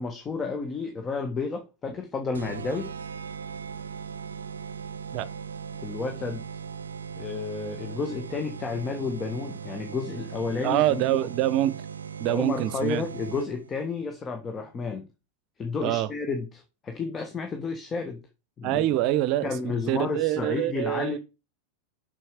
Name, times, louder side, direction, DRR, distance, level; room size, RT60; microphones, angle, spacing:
voice 1, 0.0-2.9 5.8-6.4 7.2-11.1 12.3-15.1 15.6-18.2 18.6-18.9 19.4-21.2, left 4 dB, 20° left, 1.4 m, -31 dB
sound 1, 2.3-13.7, right 6 dB, 70° right, 0.6 m, -38 dB
voice 2, 10.6-11.8 12.2-13.0 15.8-16.1 18.6-21.2, right 14 dB, 40° right, 0.8 m, -25 dB
7.5 x 6.4 x 5.0 m
figure-of-eight pair, 90°, 0 cm